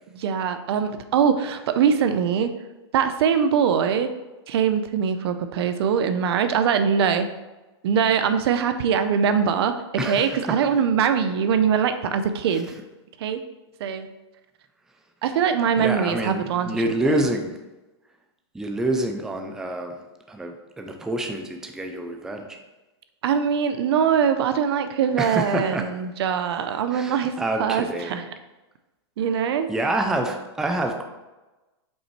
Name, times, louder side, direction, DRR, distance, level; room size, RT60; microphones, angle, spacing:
voice 1, 0.1-2.5 2.9-4.1 4.5-7.3 7.8-12.7 13.2-13.4 13.8-14.1 15.2-17.2 23.2-27.3 27.6-28.2 29.2-29.7, right 7 dB, 65° right, 9 dB, 0.6 m, -22 dB
voice 2, 10.0-10.6 15.8-17.6 18.5-20.0 20.3-22.6 25.2-25.9 26.9-28.2 29.7-31.0, right 1 dB, 5° right, 4 dB, 0.4 m, -27 dB
5.4 x 4.0 x 4.5 m, 1.1 s
hypercardioid pair, 145°, 14 cm